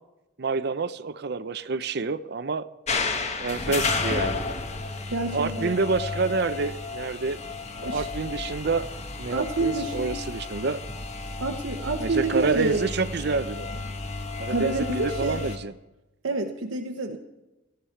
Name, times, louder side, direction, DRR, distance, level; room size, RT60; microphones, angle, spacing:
voice 1, 0.4-2.7 3.4-4.5 5.3-7.5 7.7-8.9 9.2-10.8 12.0-13.8 14.4-15.7, right 4 dB, 55° right, 14 dB, 0.6 m, -28 dB
sound 1, 2.9-15.6, left 3 dB, 35° left, 1.3 m, -32 dB
voice 2, 5.1-5.7 7.8-8.1 9.3-10.2 11.4-12.8 14.5-15.6 16.2-17.2, right 3 dB, 85° right, 4 dB, 1.0 m, -28 dB
18.0 x 14.0 x 4.5 m, 1.0 s
head